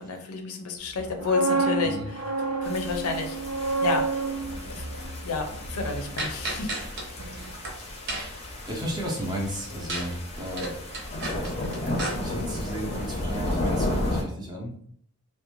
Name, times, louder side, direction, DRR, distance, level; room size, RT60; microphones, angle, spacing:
voice 1, 0.0-2.2 2.6-3.4 3.8-4.1 4.7-4.9 5.2-6.7, left 4 dB, 80° left, 5 dB, 0.5 m, -30 dB
sound 1, 1.0-6.9 7.2-7.4, right 3 dB, 75° right, 0.4 m, -30 dB
sound 2, 2.6-14.2, left 1 dB, 30° left, 0.5 m, -33 dB
sound 3, 6.2-7.0 7.4-7.7 8.1-8.5 9.9-10.1 10.4-12.1, right 2 dB, 55° right, 0.8 m, -32 dB
voice 2, 7.9-10.8 11.3-11.5 11.8-14.8, equal, 20° right, -1 dB, 0.5 m, -34 dB
2.5 x 2.1 x 2.8 m, 0.65 s
head